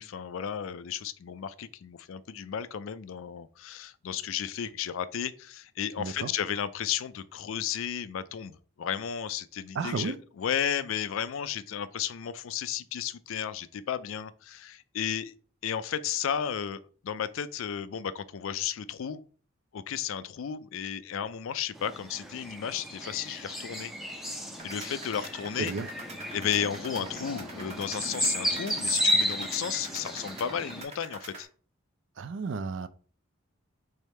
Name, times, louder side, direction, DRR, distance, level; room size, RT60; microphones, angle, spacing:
voice 1, 0.0-15.3 15.6-19.2 19.7-23.9 24.6-25.7 26.3-31.5, left 8 dB, 70° left, 0.4 m, -33 dB
voice 2, 6.0-6.3 9.7-10.2 25.6-25.9 32.2-32.9, right 4 dB, 60° right, 0.4 m, -32 dB
sound 1, 21.7-30.8, equal, ahead, 0.5 m, -33 dB
sound 2, 24.6-31.4, right 3 dB, 30° right, 0.9 m, -46 dB
3.6 x 3.4 x 4.2 m
head